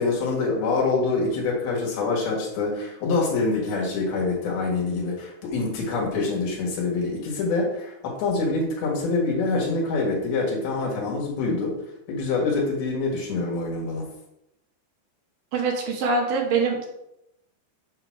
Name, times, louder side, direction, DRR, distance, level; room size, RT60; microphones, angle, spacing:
voice 1, 0.0-11.8 12.1-14.0, left 3 dB, 75° left, -2 dB, 3.5 m, -25 dB
voice 2, 15.5-16.9, right 4 dB, 70° right, 0 dB, 2.3 m, -24 dB
7.8 x 2.9 x 5.9 m, 0.84 s
omnidirectional pair, 4.6 m